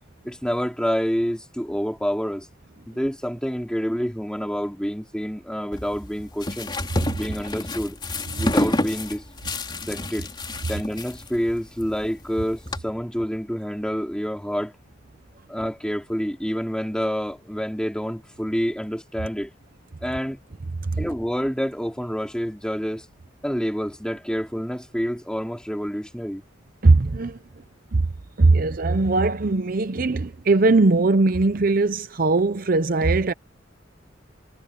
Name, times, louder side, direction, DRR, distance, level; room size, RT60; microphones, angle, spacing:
voice 1, 0.2-2.5 2.9-6.7 7.1-8.0 8.4-9.2 9.9-10.3 10.7-14.7 15.5-19.5 20.0-20.4 21.0-23.1 23.4-26.4, equal, 5° left, 4.3 m, -28 dB
sound 1, 5.7-12.8, left 1 dB, 25° left, 3.4 m, -29 dB
voice 2, 26.8-27.4 27.9-28.0 28.4-33.3, right 3 dB, 50° right, 0.7 m, -20 dB
head